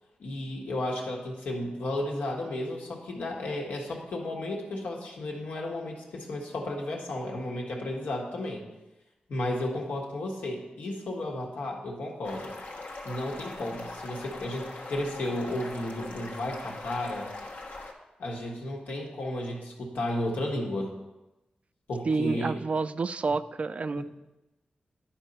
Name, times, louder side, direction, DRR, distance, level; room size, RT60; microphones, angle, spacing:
voice 1, 0.2-8.6 9.3-12.5 13.0-17.3 18.2-20.9 21.9-22.6 24.0-24.1, left 1 dB, 90° left, -1 dB, 1.6 m, -33 dB
sound 1, 12.2-17.9, left 2 dB, 70° left, 1.3 m, -41 dB
voice 2, 22.1-24.0, right 4 dB, 45° right, 14 dB, 0.3 m, -29 dB
11.0 x 4.5 x 5.5 m, 1.0 s
cardioid pair, 80°, 3 cm